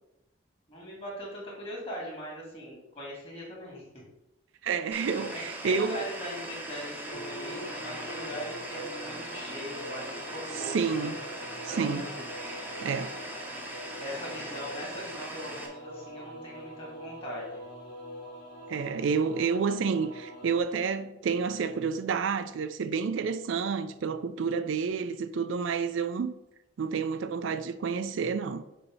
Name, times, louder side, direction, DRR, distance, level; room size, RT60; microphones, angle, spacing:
voice 1, 0.7-3.8 5.6-11.1 11.7-12.2 14.0-17.6, equal, 30° left, 2.4 m, -40 dB
voice 2, 4.6-6.0 10.6-11.2 11.6-12.1 12.8-13.1 18.7-26.3 26.8-28.6, right 5 dB, 75° right, 0.4 m, -29 dB
sound 1, 4.9-15.7, right 1 dB, 10° right, 0.7 m, -40 dB
sound 2, 7.1-20.6, equal, 65° left, 2.3 m, -43 dB
6.8 x 2.8 x 5.4 m
head